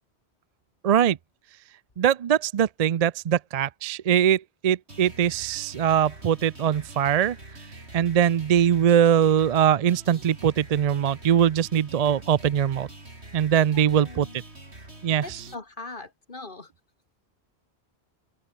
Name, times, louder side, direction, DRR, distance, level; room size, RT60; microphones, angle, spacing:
voice 1, 0.8-1.2 2.0-7.4 7.9-12.9 13.3-14.3 15.0-15.4, right 9 dB, 55° right, 0.4 m, -22 dB
sound 1, 4.9-15.5, right 2 dB, 75° right, 5.6 m, -45 dB
voice 2, 13.7-14.4 15.2-16.7, left 3 dB, 50° left, 2.0 m, -41 dB
open air
omnidirectional pair, 1.1 m